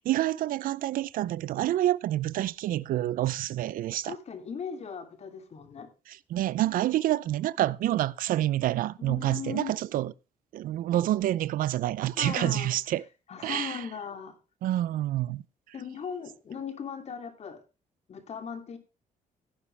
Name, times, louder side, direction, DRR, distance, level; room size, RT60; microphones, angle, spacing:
voice 1, 0.1-4.2 6.1-10.1 10.5-13.0 13.4-13.8 14.6-15.4, right 14 dB, 80° right, 0.6 m, -28 dB
voice 2, 4.0-5.9 9.0-9.7 12.2-12.7 13.3-14.4 15.7-17.6 18.1-18.8, left 6 dB, 50° left, 2.8 m, -38 dB
16.0 x 9.7 x 3.4 m
cardioid pair, 100°, 14 cm